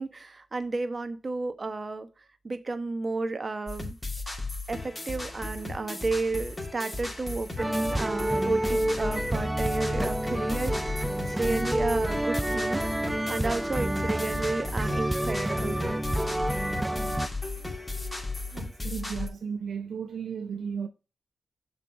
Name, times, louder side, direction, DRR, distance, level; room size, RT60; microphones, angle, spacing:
voice 1, 0.0-2.1 2.4-3.9 4.7-11.0 11.3-12.8 13.3-16.0, right 3 dB, 45° right, 1.1 m, -32 dB
sound 1, 3.7-19.3, left 2 dB, 20° left, 2.7 m, -36 dB
sound 2, 7.6-17.3, right 1 dB, 10° right, 0.4 m, -29 dB
voice 2, 18.5-20.9, right 6 dB, 75° right, 0.6 m, -35 dB
7.0 x 3.3 x 6.1 m
supercardioid pair, 45°, 0 cm